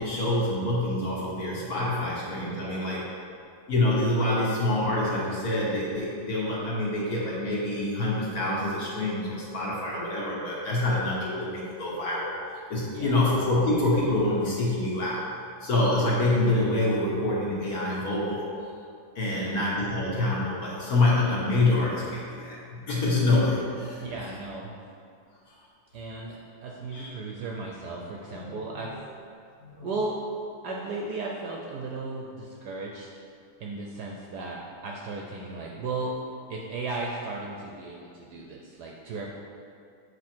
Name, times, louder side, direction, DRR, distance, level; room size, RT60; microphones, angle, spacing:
voice 1, 0.0-3.0 3.7-12.4 12.7-15.3 15.6-18.4 19.1-22.6 22.9-24.1 26.9-27.1 28.4-28.6 28.9-29.0 29.6-29.9, left 2 dB, 50° left, -6 dB, 1.5 m, -26 dB
voice 2, 2.5-2.9 12.9-13.2 19.3-19.5 24.0-24.8 25.9-28.9 29.8-30.2 30.6-33.1 33.6-36.1 36.5-39.3, right 3 dB, 70° right, -1 dB, 1.0 m, -35 dB
6.8 x 4.7 x 4.4 m, 2.4 s
omnidirectional pair, 2.2 m